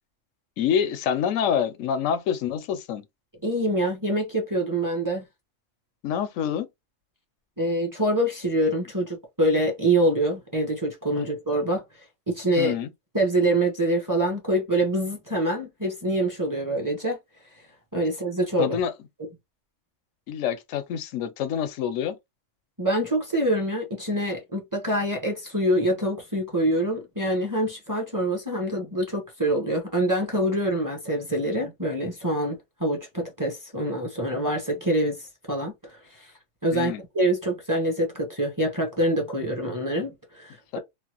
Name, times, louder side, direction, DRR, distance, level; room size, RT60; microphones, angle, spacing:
voice 1, 0.6-3.0 6.0-6.7 11.2-11.3 12.6-12.9 18.6-18.9 20.3-22.2 36.7-37.0 40.7-40.8, left 8 dB, 85° left, 1.0 m, -26 dB
voice 2, 3.4-5.2 7.6-11.8 12.3-12.7 13.1-17.2 17.9-18.8 22.8-35.2 35.5-35.7 36.6-40.5, right 1 dB, 20° right, 0.7 m, -25 dB
3.2 x 2.2 x 2.8 m
omnidirectional pair, 1.3 m